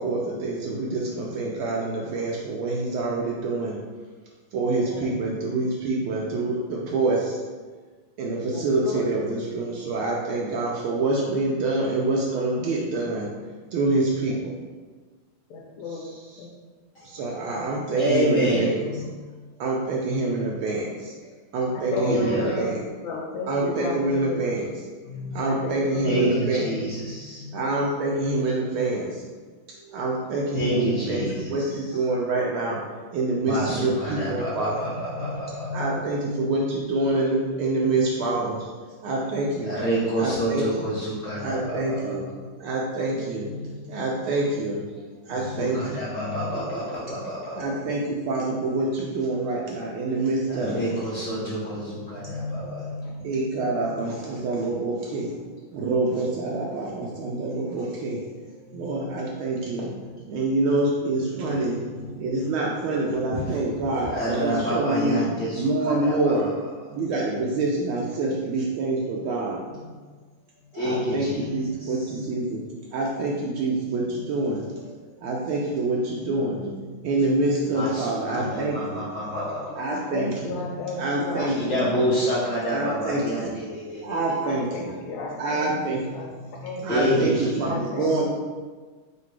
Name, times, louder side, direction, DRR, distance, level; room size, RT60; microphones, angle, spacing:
voice 1, 0.0-3.8 4.5-7.4 8.2-13.3 13.7-14.6 15.9-16.4 17.0-19.0 19.6-21.1 21.5-22.8 23.5-24.8 25.3-26.9 27.5-29.2 29.7-32.8 33.1-34.9 35.7-38.6 39.0-39.8 40.2-40.9 41.4-42.2 42.6-43.5 43.9-44.8 45.2-46.0 47.6-51.0 53.2-55.3 55.7-58.2 58.7-59.9 60.3-61.8 62.2-65.3 65.5-66.5 66.9-69.6 70.7-72.6 72.9-74.6 75.2-76.6 77.0-79.0 79.7-80.5 81.0-81.8 82.7-83.5 84.0-84.9 85.4-86.0 86.8-88.3, right 2 dB, 80° right, -3 dB, 1.4 m, -26 dB
voice 2, 4.7-5.1 8.4-9.1 14.3-14.4 15.5-16.1 16.4-16.5 21.7-22.7 23.0-24.5 25.5-26.5 30.5-30.6 30.9-31.0 35.9-36.1 43.1-43.2 53.2-53.7 79.9-82.1 82.8-82.9 84.4-86.3 86.6-86.8 87.6-88.1, left 3 dB, 85° left, -2 dB, 1.5 m, -34 dB
voice 3, 18.0-19.0 21.9-22.6 25.1-25.4 26.0-27.5 29.8-29.9 30.6-31.4 33.5-36.5 39.8-42.2 43.6-43.8 45.4-47.6 50.5-51.8 52.1-53.3 61.5-61.6 63.3-63.4 64.1-66.3 70.8-71.6 77.7-79.8 81.6-84.2 86.9-87.6, equal, 55° left, -9 dB, 0.8 m, -28 dB
3.8 x 2.6 x 4.5 m, 1.4 s
omnidirectional pair, 2.4 m